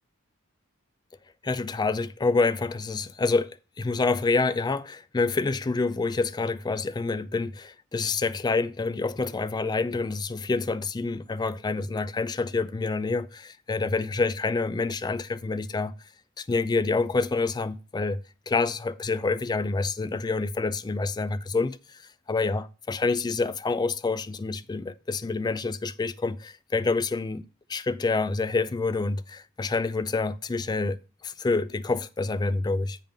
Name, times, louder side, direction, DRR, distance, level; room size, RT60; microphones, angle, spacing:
voice 1, 1.4-15.9 16.4-18.2 18.5-33.0, left 3 dB, 20° left, 0.3 m, -27 dB
7.5 x 5.2 x 5.3 m
head